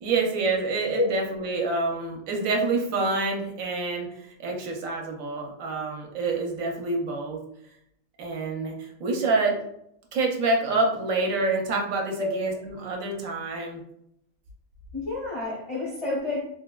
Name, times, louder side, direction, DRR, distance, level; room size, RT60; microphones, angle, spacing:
voice 1, 0.0-7.4 8.2-9.6 10.1-13.8, right 3 dB, 70° right, 1 dB, 1.0 m, -27 dB
voice 2, 14.9-16.4, left 2 dB, 50° left, -5 dB, 0.4 m, -28 dB
3.3 x 2.1 x 2.2 m, 0.74 s
omnidirectional pair, 1.5 m